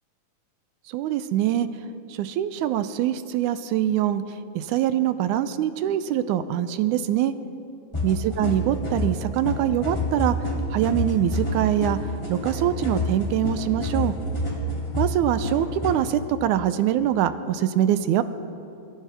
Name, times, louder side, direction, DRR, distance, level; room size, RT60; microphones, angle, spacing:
voice 1, 0.9-1.7 2.1-7.3 8.0-10.4 10.7-12.0 12.3-14.1 15.0-18.2, right 11 dB, 85° right, 12 dB, 2.1 m, -24 dB
sound 1, 7.9-16.0, left 1 dB, 10° left, 2.4 m, -28 dB
27.5 x 15.0 x 3.5 m, 2.7 s
omnidirectional pair, 3.5 m